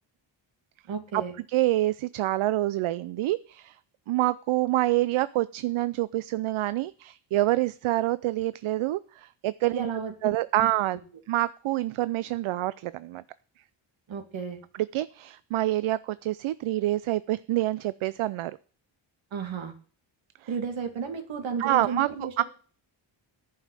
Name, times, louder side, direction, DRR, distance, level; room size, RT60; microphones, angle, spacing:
voice 1, 0.9-1.4 9.7-10.1 10.6-10.7 14.1-14.6 19.3-19.7 20.5-22.4, right 6 dB, 70° right, 6 dB, 2.3 m, -33 dB
voice 2, 1.5-3.8 4.1-9.9 10.2-11.0 11.3-13.2 14.9-18.6 21.6-22.1 22.4-22.5, right 16 dB, 90° right, 17 dB, 0.6 m, -27 dB
11.0 x 5.7 x 8.8 m, 0.41 s
wide cardioid pair, 160°, 47 cm